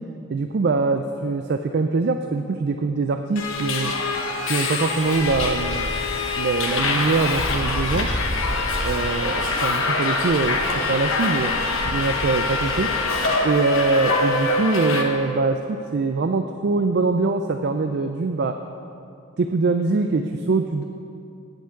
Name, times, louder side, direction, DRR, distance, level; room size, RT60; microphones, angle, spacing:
voice 1, 0.3-3.9 4.5-5.9 6.4-8.1 8.8-11.5 11.9-18.6 19.4-20.8, right 3 dB, 55° right, 7 dB, 0.4 m, -23 dB
Subway metro underground, 3.4-15.0, left 3 dB, 80° left, 1.1 m, -24 dB
8.9 x 5.8 x 8.2 m, 2.5 s
head